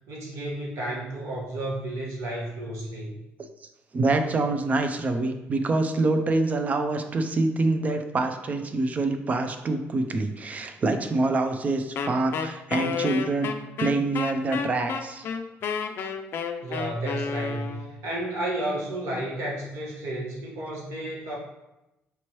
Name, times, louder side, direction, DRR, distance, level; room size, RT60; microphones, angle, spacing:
voice 1, 0.1-3.1 16.6-21.4, right 1 dB, 90° right, -4 dB, 1.3 m, -32 dB
voice 2, 3.6-13.5 13.8-15.3, right 2 dB, 30° right, 7 dB, 0.4 m, -26 dB
Wind instrument woodwind instrument, 12.0-18.0, left 6 dB, 55° left, 0.4 m, -31 dB
5.3 x 3.0 x 3.0 m, 0.96 s
cardioid pair, 130°, 5 cm